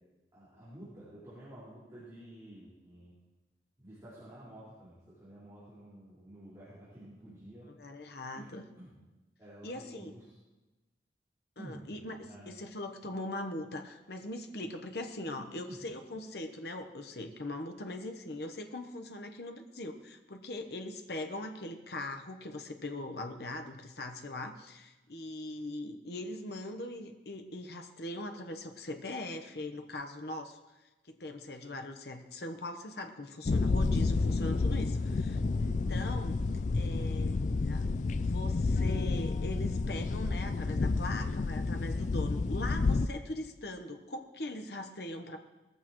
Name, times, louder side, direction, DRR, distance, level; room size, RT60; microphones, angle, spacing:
voice 1, 0.3-3.1 3.8-8.0 8.3-8.5 8.7-8.9 9.4-10.2 11.6-12.6 15.3-15.8, right 1 dB, 20° right, -11 dB, 4.7 m, -51 dB
voice 2, 7.7-8.7 9.6-10.1 11.6-30.6 31.1-36.4 36.7-37.8 38.2-45.4, left 1 dB, 60° left, 5 dB, 1.0 m, -41 dB
sound 1, 33.5-43.1, left 3 dB, 40° left, 0.4 m, -30 dB
20.0 x 15.0 x 3.1 m, 1.1 s
head